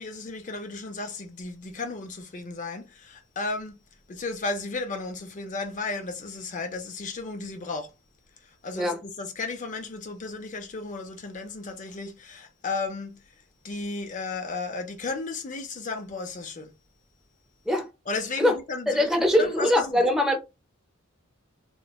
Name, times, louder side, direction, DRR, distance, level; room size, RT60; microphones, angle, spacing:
voice 1, 0.0-3.7 4.1-7.9 8.4-13.2 13.6-16.7 18.1-20.0, left 3 dB, 40° left, 0.5 m, -34 dB
voice 2, 18.9-20.4, left 1 dB, ahead, 0.6 m, -22 dB
3.0 x 2.1 x 2.3 m
head